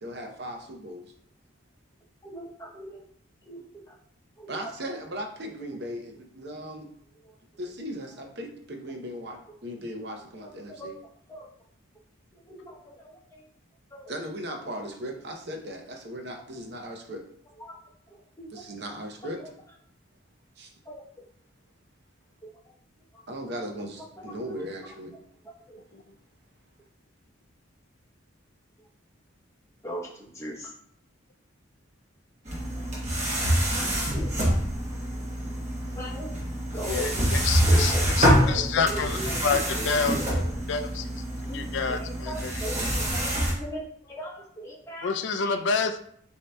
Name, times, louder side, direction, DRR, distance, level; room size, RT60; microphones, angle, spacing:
voice 1, 0.0-1.0 4.5-6.9 7.6-10.9 14.1-17.2 18.5-19.4 20.6-20.7 23.3-25.2, equal, 50° right, 2 dB, 0.7 m, -37 dB
voice 2, 2.2-3.0 3.4-4.0 4.4-4.7 7.2-7.7 10.4-10.9 11.3-11.5 12.5-13.5 13.9-14.1 17.6-17.8 18.1-18.6 20.8-21.3 22.4-22.5 23.1-23.2 24.2-24.4 25.4-25.8 29.8-30.7 32.8-33.0 33.7-34.6 35.9-36.3 36.7-37.2 37.6-40.6 41.5-45.6, right 1 dB, 15° left, -2 dB, 0.8 m, -40 dB
sound 1, 32.5-43.5, equal, 35° right, 1.1 m, -26 dB
voice 3, 36.9-39.6 39.9-40.4 40.7-41.2 41.5-42.5 45.0-46.0, left 5 dB, 55° left, 8 dB, 0.3 m, -28 dB
8.2 x 2.7 x 2.2 m, 0.64 s
head